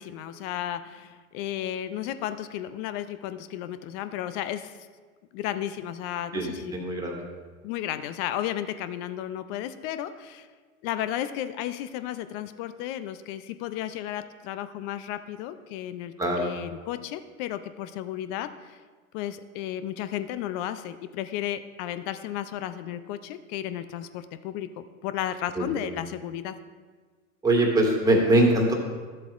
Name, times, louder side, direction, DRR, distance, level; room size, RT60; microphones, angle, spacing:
voice 1, 0.0-4.8 5.3-6.7 7.6-10.5 10.8-18.8 19.1-26.6, left 11 dB, 40° left, 12 dB, 0.5 m, -33 dB
voice 2, 6.7-7.2 16.2-16.5 25.6-25.9 27.4-28.7, right 1 dB, 10° right, 0 dB, 1.7 m, -22 dB
13.0 x 7.6 x 2.5 m, 1.5 s
hypercardioid pair, 100°, 42 cm